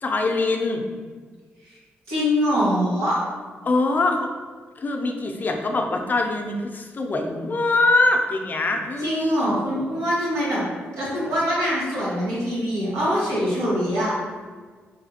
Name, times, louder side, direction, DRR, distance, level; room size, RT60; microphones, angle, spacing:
voice 1, 0.0-0.8 3.6-4.3 4.8-9.5, left 2 dB, 40° left, 3 dB, 0.5 m, -23 dB
voice 2, 2.1-3.2 9.0-10.6 11.0-14.1, equal, 90° right, -8 dB, 1.4 m, -23 dB
3.5 x 3.2 x 2.8 m, 1.5 s
cardioid pair, 75°, 5 cm